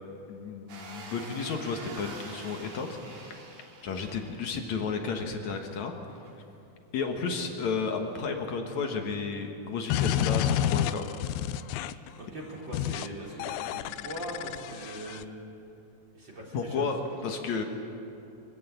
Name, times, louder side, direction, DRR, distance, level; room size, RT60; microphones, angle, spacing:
voice 1, 0.3-3.5 3.8-5.9 6.9-11.1 16.5-17.6, left 5 dB, 60° left, 4 dB, 2.3 m, -32 dB
sound 1, 0.7-4.7 5.2-5.3 5.5-5.8 6.2-6.3 7.1-7.2, right 3 dB, 55° right, 3.7 m, -45 dB
sound 2, 9.9-12.1 12.7-13.1 13.4-15.2, left 11 dB, 85° left, 2.5 m, -29 dB
voice 2, 12.2-15.3 16.1-16.9, right 1 dB, 30° right, -3 dB, 3.8 m, -40 dB
24.0 x 15.0 x 8.7 m, 2.8 s
omnidirectional pair, 4.4 m